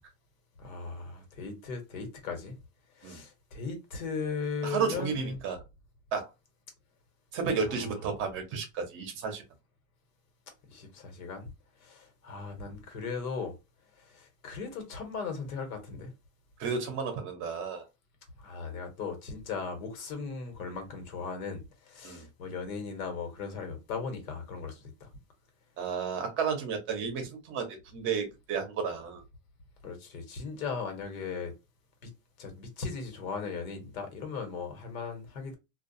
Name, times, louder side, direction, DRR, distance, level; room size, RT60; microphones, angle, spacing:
voice 1, 0.6-2.6 2.9-5.4 7.7-8.0 10.7-11.5 11.8-13.5 13.9-16.1 18.4-25.1 29.8-31.5 32.0-32.1 32.4-35.6, left 5 dB, 85° left, 1.2 m, -38 dB
voice 2, 4.6-5.6 6.1-6.3 7.3-9.4 16.6-17.8 22.0-22.3 25.8-29.2, right 6 dB, 30° right, 0.7 m, -32 dB
2.4 x 2.2 x 2.6 m
supercardioid pair, 155°, 41 cm